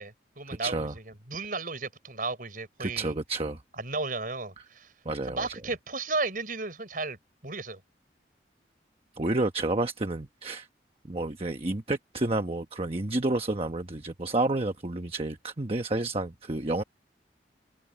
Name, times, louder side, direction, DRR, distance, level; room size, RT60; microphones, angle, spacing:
voice 1, 0.0-3.1 3.8-4.9 5.2-7.2 7.4-7.8, right 3 dB, 50° right, 5.7 m, -34 dB
voice 2, 0.6-0.9 2.8-3.6 5.0-5.5 9.2-10.7 11.0-16.8, right 2 dB, 35° right, 1.1 m, -30 dB
head